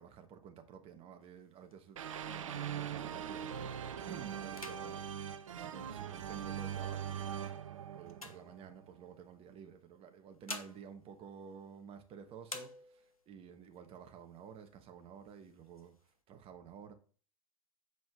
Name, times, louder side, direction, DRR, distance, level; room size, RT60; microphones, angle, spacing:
voice 1, 0.0-3.8 4.1-7.2 7.9-15.9 16.3-16.9, right 7 dB, 35° right, 1.3 m, -52 dB
rubber band, 1.2-3.4 3.9-4.1 4.4-6.4 7.0-9.2 10.1-12.1 12.4-13.3 13.7-13.8 14.1-14.8 15.2-16.1, left 2 dB, 90° left, 0.9 m, -51 dB
sound 1, 2.0-8.9, right 9 dB, 65° right, 0.6 m, -41 dB
7.8 x 5.0 x 3.6 m
figure-of-eight pair, 90°, 18 cm